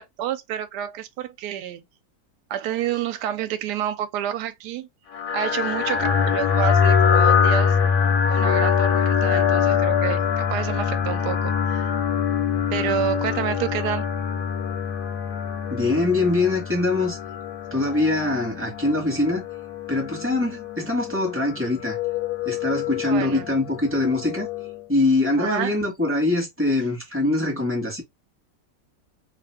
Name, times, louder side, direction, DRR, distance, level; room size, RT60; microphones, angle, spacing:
voice 1, 0.0-1.8 2.5-4.9 5.3-7.8 8.3-11.9 12.7-14.0 23.0-23.5 25.4-25.8, right 10 dB, 70° right, 1.1 m, -29 dB
sound 1, 5.1-24.8, left 7 dB, 70° left, 1.0 m, -24 dB
voice 2, 15.7-17.2 17.7-19.4 19.9-22.0 22.4-24.5 24.9-28.0, left 2 dB, 10° right, 0.9 m, -23 dB
2.7 x 2.5 x 3.2 m
omnidirectional pair, 2.0 m